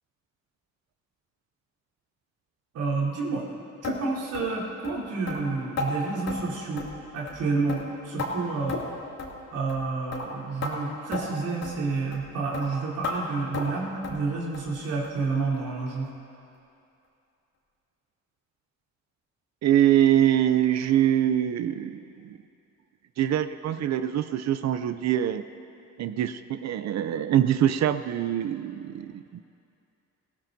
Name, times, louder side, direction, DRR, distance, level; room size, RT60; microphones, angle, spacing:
voice 1, 2.7-3.5 3.8-6.9 7.1-8.9 9.5-16.1, right 3 dB, 90° right, -7 dB, 3.9 m, -29 dB
sound 1, 3.8-4.0 4.3-4.5 4.8-5.0 5.3-5.4 5.8-5.9 6.3-6.4 6.8-7.0 7.3-7.4 7.7-8.3 8.7-8.9 9.2-9.3 9.7-9.8 10.1-10.3 10.6-10.7 11.1-11.2 11.6-11.8 12.1-12.3 12.5-12.7 13.0-13.2 13.5-13.7 14.0-14.2 14.5-14.7 15.0-15.2 15.5-15.6 16.0-16.1, left 3 dB, 60° left, 2.6 m, -33 dB
voice 2, 19.6-22.4 23.2-25.4 26.0-29.4, right 11 dB, 60° right, 11 dB, 0.6 m, -24 dB
20.0 x 16.5 x 2.7 m, 2.6 s
cardioid pair, 90°, 30 cm